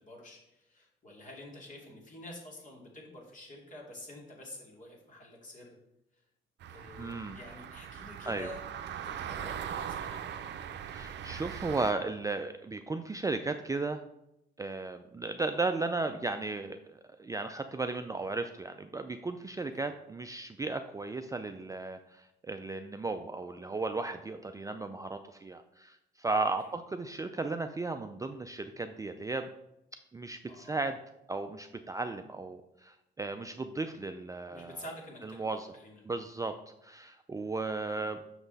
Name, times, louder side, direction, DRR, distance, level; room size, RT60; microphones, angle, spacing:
voice 1, 0.0-5.8 6.1-6.2 6.7-8.6 8.9-10.4 19.7-19.9 30.5-30.8 34.5-35.5 35.7-36.1 37.9-38.1, left 1 dB, 40° left, -2 dB, 2.6 m, -48 dB
sound 1, 6.6-11.9, right 8 dB, 65° right, 0.6 m, -40 dB
voice 2, 7.0-7.4 8.3-8.5 10.9-14.0 14.6-29.5 30.1-31.0 31.3-34.8 35.4-35.7 36.1-36.6 36.8-38.2, right 3 dB, 15° right, 7 dB, 0.4 m, -35 dB
6.3 x 6.0 x 4.1 m, 0.85 s
cardioid pair, 90°, 20 cm